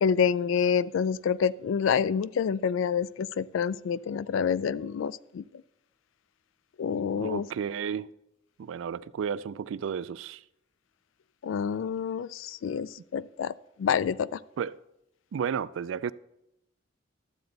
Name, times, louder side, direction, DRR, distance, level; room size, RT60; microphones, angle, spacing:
voice 1, 0.0-5.4 6.8-7.5 11.4-13.5 13.8-14.4, left 7 dB, 75° left, 0.3 m, -27 dB
voice 2, 7.1-8.1 8.6-10.4 14.6-14.8 15.3-16.1, right 7 dB, 75° right, 0.3 m, -32 dB
12.0 x 7.7 x 4.0 m
head